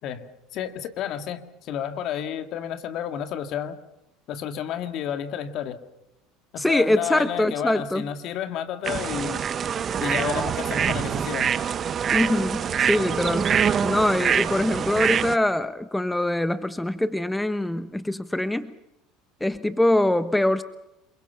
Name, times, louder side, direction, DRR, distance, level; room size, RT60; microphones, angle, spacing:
voice 1, 0.0-3.8 4.3-5.8 6.5-9.5 10.0-11.5, left 9 dB, 55° left, 8 dB, 2.0 m, -31 dB
voice 2, 6.6-8.0 12.1-13.5 13.8-18.7 19.4-20.6, left 1 dB, 5° left, 12 dB, 1.1 m, -23 dB
sound 1, 8.8-15.4, right 7 dB, 35° right, 1.1 m, -25 dB
28.0 x 22.5 x 5.8 m, 0.91 s
supercardioid pair, 90°, 0 cm